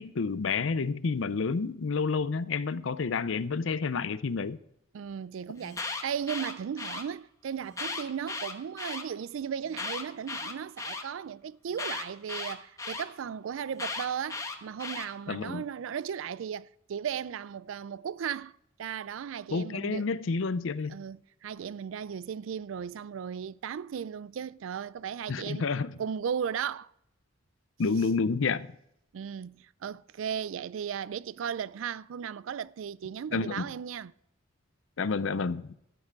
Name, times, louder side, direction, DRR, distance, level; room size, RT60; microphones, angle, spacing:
voice 1, 0.0-4.6 15.3-15.6 19.5-21.0 25.3-26.0 27.8-28.7 33.3-33.7 35.0-35.8, left 4 dB, 70° left, 0.6 m, -29 dB
voice 2, 4.9-18.5 18.8-20.1 20.9-25.7 26.0-26.9 29.1-34.1, right 8 dB, 75° right, 0.4 m, -36 dB
Alarm, 5.6-7.0 7.7-9.0 9.7-11.0 11.8-13.0 13.8-15.1, left 3 dB, 15° left, 1.1 m, -36 dB
13.0 x 9.0 x 4.7 m
head